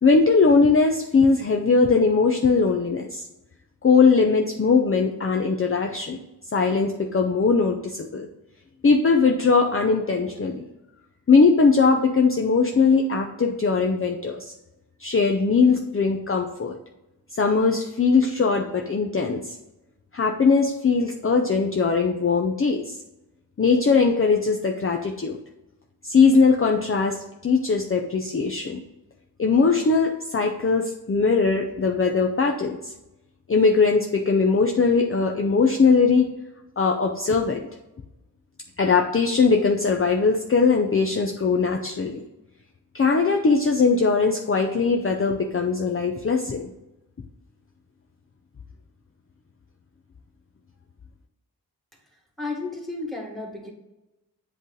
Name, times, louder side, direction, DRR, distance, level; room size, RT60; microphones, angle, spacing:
voice 1, 0.0-3.2 3.8-6.2 6.5-8.3 8.8-10.6 11.3-14.5 15.0-16.8 17.3-19.6 20.1-23.0 23.6-25.4 26.0-28.8 29.4-32.9 33.5-36.3 36.8-37.7 38.8-42.2 42.9-46.7, left 4 dB, 35° left, 2 dB, 0.6 m, -20 dB
voice 2, 52.0-53.7, left 3 dB, ahead, 0 dB, 1.7 m, -33 dB
7.9 x 3.2 x 3.9 m, 0.97 s
wide cardioid pair, 60°, 38 cm